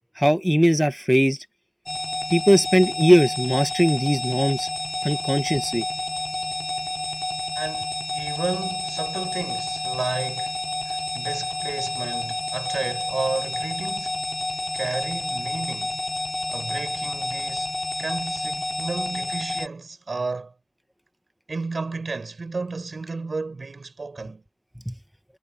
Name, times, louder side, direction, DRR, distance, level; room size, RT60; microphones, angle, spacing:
voice 1, 0.2-1.4 2.3-4.7 5.0-5.8 24.9-25.0, equal, ahead, 1.1 m, -19 dB
sound 1, 1.9-19.7, left 2 dB, 45° left, 2.8 m, -29 dB
voice 2, 7.6-10.5 10.8-14.2 14.7-16.0 16.5-17.7 18.0-20.5 21.5-24.4, right 3 dB, 75° right, 5.9 m, -32 dB
wide cardioid pair, 50°, 0 cm